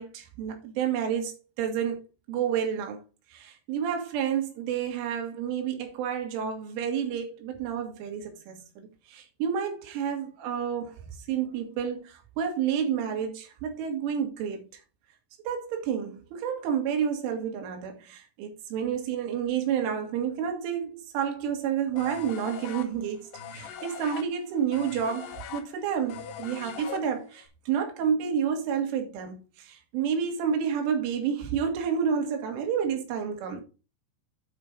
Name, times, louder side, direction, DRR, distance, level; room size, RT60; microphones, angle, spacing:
voice 1, 0.0-2.0 2.3-3.0 3.3-11.0 11.3-14.7 15.4-33.6, right 7 dB, 75° right, 4.2 m, -30 dB
sound 1, 22.0-27.5, left 8 dB, 75° left, 2.0 m, -41 dB
9.3 x 5.1 x 5.0 m
omnidirectional pair, 5.7 m